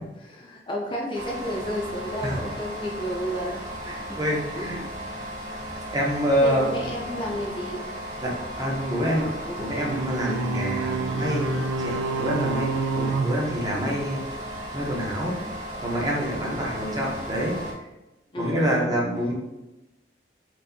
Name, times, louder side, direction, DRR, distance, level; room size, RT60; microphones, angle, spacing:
voice 1, 0.0-3.6 4.5-4.9 6.4-7.8 9.5-10.4 16.3-16.6 18.3-18.9, equal, 30° left, -2 dB, 0.5 m, -32 dB
sound 1, 1.1-17.7, equal, 45° right, 1.4 m, -36 dB
voice 2, 3.9-4.8 5.9-6.8 8.2-8.3 8.6-9.3 9.6-14.2 14.7-15.4 15.8-17.5 18.4-19.3, equal, 20° right, -3 dB, 0.7 m, -26 dB
sound 2, 9.8-14.3, right 3 dB, 80° right, 0.3 m, -28 dB
4.5 x 2.6 x 2.6 m, 1.0 s
head